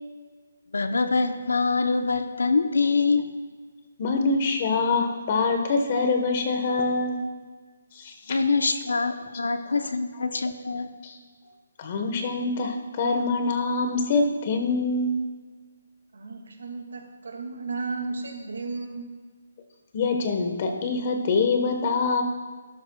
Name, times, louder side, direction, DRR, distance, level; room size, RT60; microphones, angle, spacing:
voice 1, 0.7-3.3 8.3-10.9, left 4 dB, 85° left, 8 dB, 0.9 m, -24 dB
voice 2, 4.0-7.2 7.9-8.4 11.0-11.1 11.8-15.1 19.9-22.2, left 3 dB, 40° left, 5 dB, 1.4 m, -25 dB
voice 3, 16.1-19.0, right 3 dB, 80° right, 3 dB, 2.2 m, -34 dB
12.5 x 12.0 x 2.4 m, 1.5 s
hypercardioid pair, 155°, 0 cm